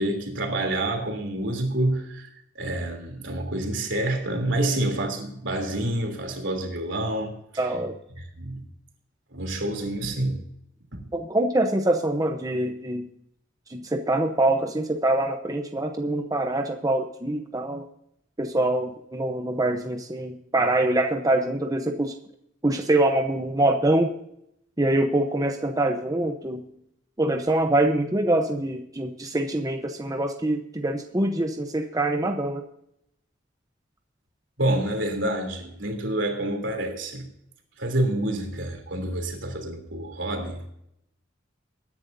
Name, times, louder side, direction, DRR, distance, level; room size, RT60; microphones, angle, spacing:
voice 1, 0.0-7.6 8.2-8.6 9.3-10.4 10.9-11.1 34.6-37.3 37.8-40.7, right 1 dB, 70° right, 4 dB, 3.2 m, -28 dB
voice 2, 7.6-8.0 11.1-13.1 13.7-17.8 18.4-22.1 22.6-24.1 24.8-26.7 27.2-32.6, right 1 dB, 20° right, 4 dB, 0.8 m, -24 dB
21.5 x 10.5 x 2.7 m, 0.77 s
head